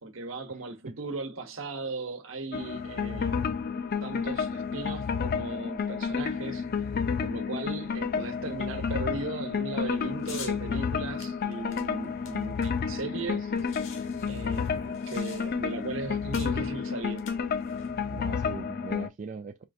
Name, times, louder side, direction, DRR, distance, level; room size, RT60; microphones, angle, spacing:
voice 1, 0.0-3.5 4.0-6.7 7.2-13.5 14.2-17.3, right 3 dB, 70° right, 1.0 m, -37 dB
sound 1, 2.5-19.1, left 6 dB, 45° left, 0.5 m, -31 dB
sound 2, 10.2-10.6 11.2-13.0 13.3-13.4 13.6-15.7 16.3-16.6 17.1-17.9, left 7 dB, 65° left, 1.0 m, -46 dB
voice 2, 12.9-13.7 18.1-19.6, right 5 dB, 35° right, 0.3 m, -41 dB
4.4 x 3.2 x 2.6 m
head